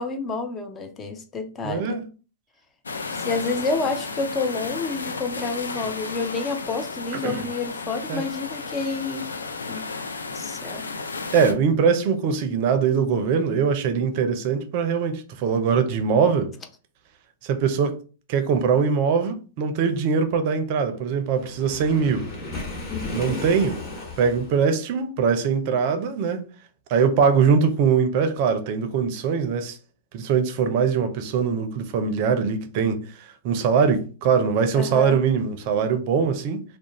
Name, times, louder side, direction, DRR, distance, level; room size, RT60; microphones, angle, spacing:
voice 1, 0.0-2.0 3.2-9.3 9.7-9.8 10.3-10.9 22.9-23.4 34.7-35.2, left 4 dB, 20° left, 0.5 m, -29 dB
voice 2, 1.6-2.0 7.2-7.5 8.1-8.3 11.3-16.5 17.4-18.0 18.3-22.3 23.1-23.8 24.2-26.4 26.9-29.8 30.1-36.6, right 6 dB, 50° right, 0.5 m, -22 dB
sound 1, 2.9-11.5, left 4 dB, 85° left, 0.4 m, -33 dB
Waves surf, 21.3-24.7, left 2 dB, 35° left, 1.2 m, -34 dB
2.4 x 2.0 x 2.9 m
hypercardioid pair, 110°, 0 cm